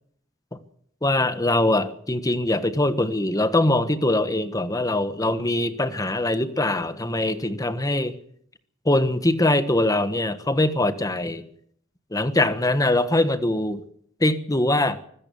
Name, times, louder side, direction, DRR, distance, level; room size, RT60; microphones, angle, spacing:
voice 1, 1.0-8.1 8.8-11.4 12.1-13.8 14.2-15.0, left 1 dB, 20° left, 11 dB, 1.4 m, -22 dB
24.5 x 16.0 x 7.1 m, 0.67 s
head